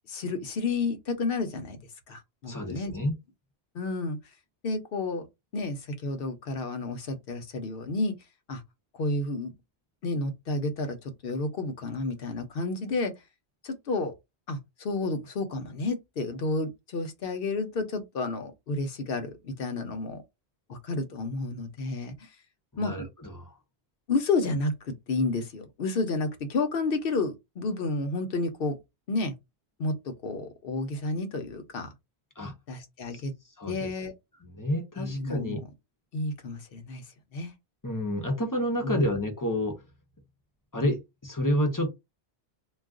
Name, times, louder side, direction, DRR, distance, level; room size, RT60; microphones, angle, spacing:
voice 1, 0.1-1.8 2.1-2.9 3.7-4.2 4.6-5.3 5.5-8.1 8.5-8.6 8.9-9.5 10.0-13.1 13.6-14.1 14.5-20.2 20.7-22.3 22.8-22.9 24.1-28.8 29.1-29.3 29.8-31.9 32.7-33.3 33.7-34.1 35.0-35.6 36.1-37.0 37.3-37.5 38.8-39.1, left 3 dB, 60° left, 0.9 m, -31 dB
voice 2, 2.4-3.1 22.7-23.5 32.4-32.5 33.1-33.2 33.6-33.9 34.4-35.6 37.8-39.8 40.7-41.9, equal, 20° left, 0.7 m, -29 dB
2.4 x 2.3 x 3.6 m
omnidirectional pair, 1.1 m